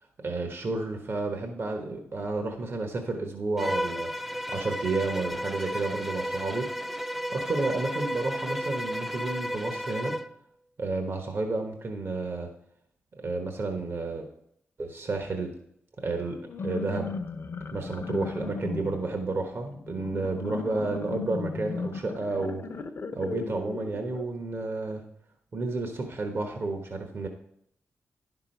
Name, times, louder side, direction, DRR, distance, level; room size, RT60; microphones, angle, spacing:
voice 1, 0.2-6.7 7.3-10.1 10.8-12.5 13.2-14.3 14.8-15.5 16.0-16.4 16.6-17.1 17.7-22.6 23.1-25.0 25.5-27.3, right 3 dB, 55° right, 4 dB, 1.2 m, -31 dB
Bowed string instrument, 3.6-10.3, equal, 5° right, 0.4 m, -33 dB
sound 1, 16.4-24.2, left 4 dB, 55° left, 0.6 m, -36 dB
10.5 x 6.0 x 4.5 m, 0.73 s
cardioid pair, 60°, 5 cm